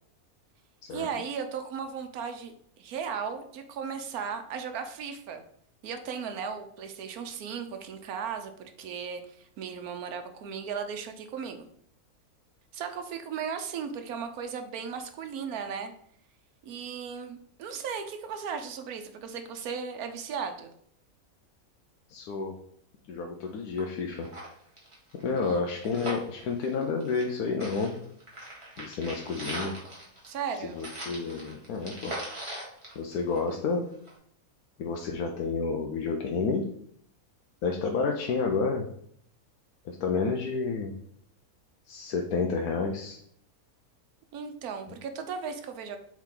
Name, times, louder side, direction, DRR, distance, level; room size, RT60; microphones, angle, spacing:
voice 1, 0.9-2.5 2.8-5.4 5.8-11.7 12.7-15.9 16.6-20.7 25.3-25.6 30.2-30.8 44.3-46.0, right 6 dB, 85° right, 7 dB, 1.2 m, -36 dB
voice 2, 22.1-22.5 23.1-24.3 25.2-28.0 28.8-29.7 30.6-32.1 33.0-33.8 34.8-36.6 37.6-38.9 39.8-40.9 41.9-43.2, left 4 dB, 85° left, 2 dB, 1.2 m, -30 dB
sound 1, 23.4-23.5 23.8-23.9 24.2-27.3 27.6-33.7 34.1-34.2, right 1 dB, 20° right, 1.7 m, -40 dB
7.3 x 3.7 x 3.8 m, 0.66 s
omnidirectional pair, 1.5 m